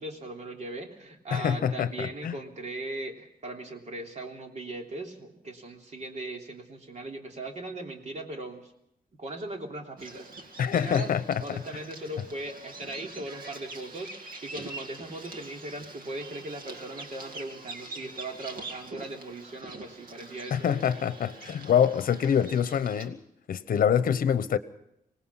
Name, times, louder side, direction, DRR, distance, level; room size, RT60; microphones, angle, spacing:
voice 1, 0.0-8.7 9.2-20.7, right 2 dB, 50° right, 3.2 m, -39 dB
voice 2, 1.3-2.3 10.6-11.6 20.5-23.2 23.5-24.6, left 8 dB, 65° left, 0.9 m, -25 dB
Bird vocalization bird call bird song, 10.0-23.1, right 2 dB, 65° right, 2.2 m, -44 dB
25.5 x 18.5 x 5.7 m
wide cardioid pair, 125°, 15 cm